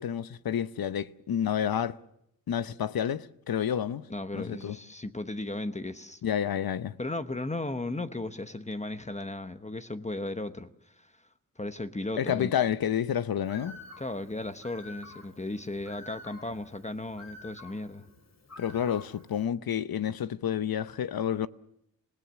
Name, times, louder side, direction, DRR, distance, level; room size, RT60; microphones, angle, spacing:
voice 1, 0.0-2.0 2.5-4.1 4.3-4.8 6.2-6.9 12.2-13.8 18.6-21.5, left 9 dB, 75° left, 0.8 m, -29 dB
voice 2, 4.1-6.2 7.0-11.1 11.6-12.5 14.0-18.1, left 2 dB, 20° left, 1.0 m, -36 dB
Bird, 13.4-19.4, left 2 dB, 45° left, 2.9 m, -50 dB
27.5 x 17.5 x 7.1 m
wide cardioid pair, 110°, 36 cm